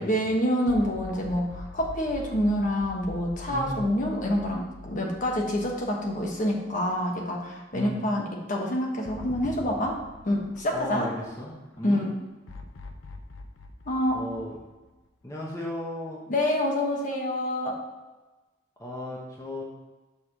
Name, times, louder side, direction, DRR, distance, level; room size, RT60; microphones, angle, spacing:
voice 1, 0.0-8.2 8.5-10.0 10.2-11.1 11.8-12.1 13.9-14.2 16.3-17.8, equal, 40° left, 0 dB, 1.1 m, -27 dB
sound 1, 0.7-7.0 7.4-7.5 9.0-11.5 12.5-15.2, left 3 dB, 85° left, 0.7 m, -44 dB
voice 2, 7.7-8.0 10.7-12.0 14.1-14.6 15.2-16.2 18.8-19.6, left 1 dB, 15° left, -4 dB, 0.9 m, -35 dB
6.5 x 3.6 x 5.9 m, 1.1 s
head